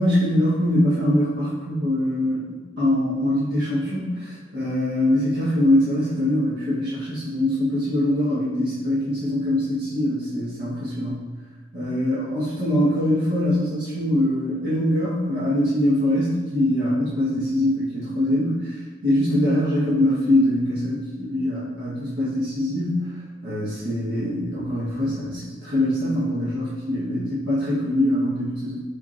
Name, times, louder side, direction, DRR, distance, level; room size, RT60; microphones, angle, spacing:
voice 1, 0.0-11.2 11.7-23.1 23.4-28.8, left 1 dB, 70° right, -11 dB, 1.3 m, -23 dB
4.6 x 4.5 x 2.5 m, 1.4 s
head